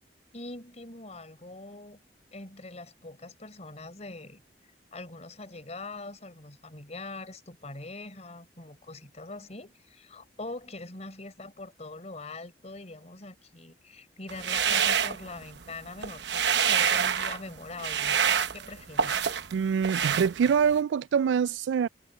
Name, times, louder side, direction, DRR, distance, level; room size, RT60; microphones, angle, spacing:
voice 1, 0.3-2.0 2.3-4.4 4.9-18.2 18.5-19.2, left 2 dB, 40° left, 4.2 m, -43 dB
sound 1, 14.3-15.7 16.0-17.4 17.8-19.5 19.8-20.8, right 7 dB, 75° right, 0.9 m, -27 dB
voice 2, 19.5-21.9, right 7 dB, 90° right, 0.3 m, -25 dB
head